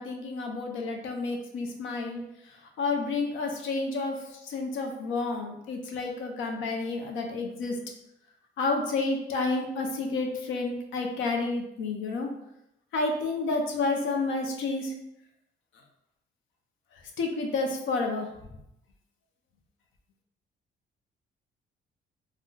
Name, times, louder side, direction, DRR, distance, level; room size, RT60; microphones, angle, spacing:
voice 1, 0.0-7.8 8.6-12.3 12.9-14.9 17.2-18.3, left 3 dB, 80° left, 3 dB, 0.6 m, -30 dB
2.4 x 2.2 x 3.7 m, 0.83 s
cardioid pair, 90°, 20 cm